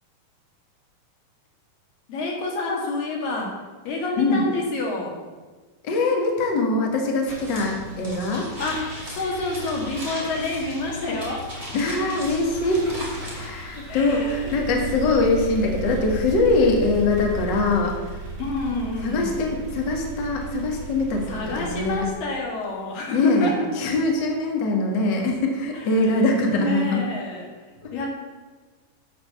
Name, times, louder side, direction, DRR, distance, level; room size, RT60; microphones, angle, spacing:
voice 1, 2.1-3.6 3.8-5.2 8.6-11.5 13.9-14.7 18.4-19.3 21.3-23.7 25.7-26.2 26.5-27.5 27.9-28.1, left 2 dB, 90° left, -1 dB, 3.6 m, -28 dB
voice 2, 5.8-8.5 11.7-18.2 19.0-21.3 21.5-22.0 23.1-27.0 27.8-27.9, left 2 dB, 45° left, 1 dB, 1.7 m, -23 dB
sound 1, 7.3-13.5, equal, 10° right, 2.6 m, -37 dB
Toilet flush, 7.8-23.0, equal, 20° left, 2.7 m, -46 dB
sound 2, 12.1-22.1, right 2 dB, 70° right, 3.6 m, -35 dB
12.0 x 5.2 x 6.7 m, 1.3 s
omnidirectional pair, 3.8 m